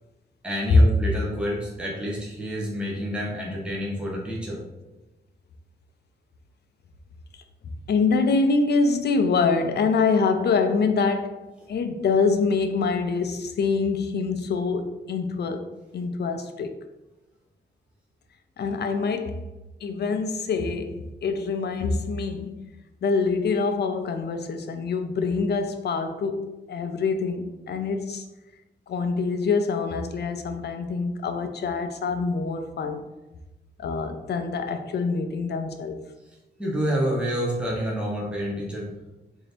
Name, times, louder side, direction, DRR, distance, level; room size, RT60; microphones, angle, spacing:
voice 1, 0.4-4.6 36.6-38.9, equal, 5° right, 0.8 m, -28 dB
voice 2, 7.6-16.8 18.6-19.5 19.8-22.7 23.0-28.2 28.9-33.0 33.8-36.0, left 4 dB, 65° left, 0.4 m, -25 dB
3.9 x 2.7 x 3.3 m
wide cardioid pair, 135°, 18 cm